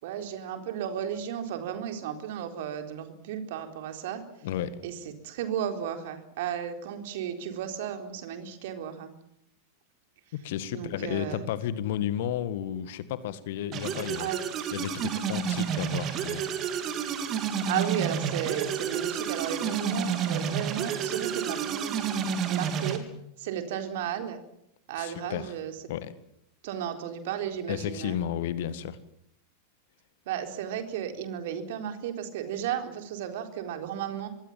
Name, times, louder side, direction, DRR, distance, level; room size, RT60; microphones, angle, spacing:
voice 1, 0.0-4.2 4.8-5.0 5.2-9.1 10.7-11.4 14.2-14.4 17.7-23.0 23.4-24.4 24.9-25.7 26.6-28.2 30.3-34.3, right 9 dB, 55° right, 6 dB, 4.1 m, -34 dB
voice 2, 4.4-4.8 10.3-14.3 14.7-16.4 25.0-25.5 25.9-26.1 27.7-29.0, left 10 dB, 55° left, 15 dB, 1.8 m, -32 dB
sound 1, 13.7-23.0, right 7 dB, 35° right, 3.6 m, -30 dB
26.0 x 21.5 x 7.4 m, 0.76 s
figure-of-eight pair, 90°, 0 cm